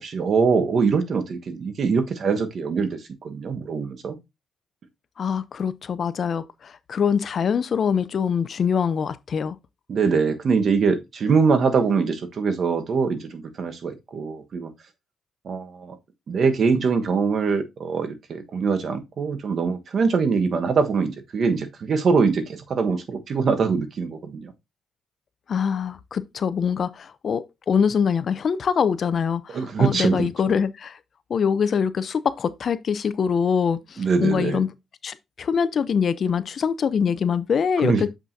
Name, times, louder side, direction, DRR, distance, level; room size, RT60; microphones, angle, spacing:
voice 1, 0.0-4.2 9.9-14.7 15.4-16.0 16.3-24.5 29.5-30.3 34.0-34.6 37.8-38.1, right 5 dB, 55° right, 1.2 m, -23 dB
voice 2, 5.2-9.6 25.5-31.0 31.3-34.7 35.0-38.1, left 6 dB, 50° left, 0.6 m, -24 dB
7.3 x 5.9 x 2.7 m
cardioid pair, 90°, 0 cm